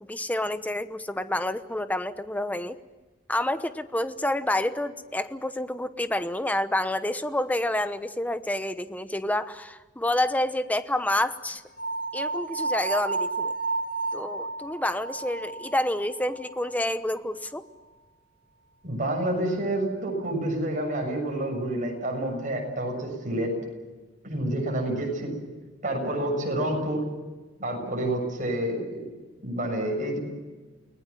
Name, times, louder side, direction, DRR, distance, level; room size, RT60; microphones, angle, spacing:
voice 1, 0.1-2.8 3.3-11.6 12.1-13.5 14.1-17.6, left 1 dB, 10° left, 11 dB, 1.0 m, -28 dB
sound 1, 11.8-16.9, right 3 dB, 50° left, 2.6 m, -32 dB
voice 2, 18.8-23.5 24.2-25.3 25.8-27.0 27.6-29.1 29.4-30.2, right 1 dB, 45° right, 2 dB, 7.2 m, -28 dB
29.5 x 20.0 x 7.5 m, 1.2 s
head